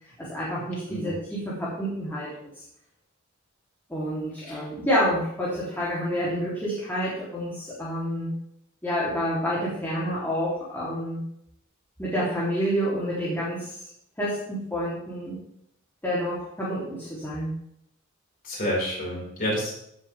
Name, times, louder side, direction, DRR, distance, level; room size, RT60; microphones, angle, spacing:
voice 1, 0.2-2.5 3.9-8.3 8.8-11.2 12.0-13.7 14.2-15.4 16.0-17.6, equal, 10° left, -8 dB, 3.3 m, -28 dB
voice 2, 18.4-19.8, equal, 45° left, -5 dB, 5.4 m, -29 dB
16.0 x 7.5 x 3.6 m, 0.74 s
head